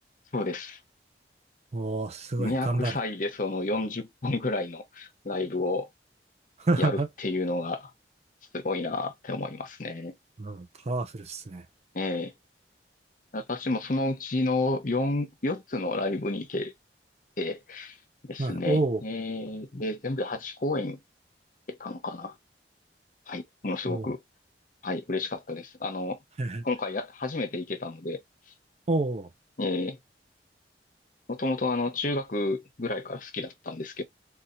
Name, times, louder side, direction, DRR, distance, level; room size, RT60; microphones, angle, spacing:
voice 1, 0.3-0.8 2.4-5.9 6.8-7.9 8.5-10.1 11.9-12.3 13.3-16.7 17.4-18.0 18.3-21.0 21.7-22.3 23.3-24.2 24.8-26.2 26.6-28.2 29.6-30.0 31.3-34.0, left 2 dB, 50° left, 0.9 m, -31 dB
voice 2, 1.7-2.9 6.6-7.1 10.4-11.6 18.4-19.0 23.9-24.0 26.4-26.6 28.9-29.3, right 2 dB, 40° right, 0.6 m, -28 dB
4.2 x 2.4 x 2.6 m
head